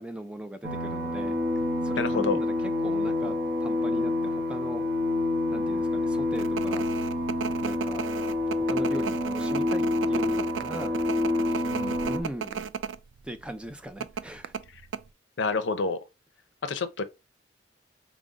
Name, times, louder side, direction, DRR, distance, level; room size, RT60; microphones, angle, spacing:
voice 1, 0.0-1.4 1.8-4.9 5.5-6.9 7.6-8.0 8.6-11.0 11.5-12.7 13.2-14.5, right 1 dB, 5° right, 0.3 m, -39 dB
sound 1, 0.6-12.2, left 2 dB, 50° right, 0.8 m, -27 dB
voice 2, 2.0-2.4 11.7-12.0 15.4-16.0 16.6-17.0, left 4 dB, 75° left, 0.6 m, -28 dB
sound 2, 6.4-13.0 13.3-13.4 14.0-15.0, right 7 dB, 80° right, 0.3 m, -35 dB
5.1 x 2.0 x 3.6 m
head